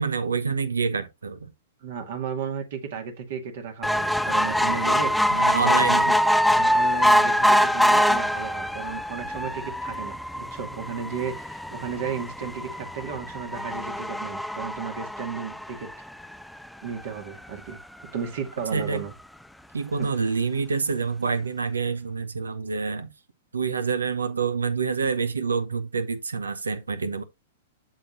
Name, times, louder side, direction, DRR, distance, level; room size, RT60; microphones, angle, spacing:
voice 1, 0.0-1.5 5.3-6.2 18.7-19.0 19.7-23.1 23.5-27.2, right 5 dB, 90° right, 0.9 m, -27 dB
voice 2, 1.8-6.2 6.5-15.9 16.8-17.8 18.1-19.1 20.0-20.1, right 7 dB, 65° right, 2.1 m, -34 dB
sound 1, 3.8-16.4 17.0-17.1 17.4-17.5 17.7-17.8, equal, ahead, 0.4 m, -24 dB
7.6 x 6.4 x 2.6 m
hypercardioid pair, 110°, 0 cm